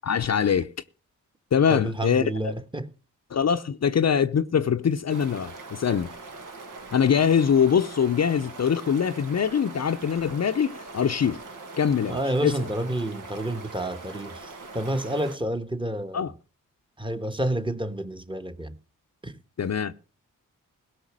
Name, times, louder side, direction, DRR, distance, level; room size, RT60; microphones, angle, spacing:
voice 1, 0.0-0.7 1.5-2.5 3.3-6.1 6.9-11.4 11.8-12.6 16.1-16.3 19.6-19.9, left 7 dB, 55° left, 0.7 m, -23 dB
voice 2, 1.7-2.9 12.1-16.3 17.0-18.8 19.2-19.4, right 1 dB, 15° right, 1.3 m, -29 dB
sound 1, 5.1-15.4, right 3 dB, 70° right, 1.7 m, -42 dB
16.5 x 5.8 x 7.4 m
cardioid pair, 50°, 32 cm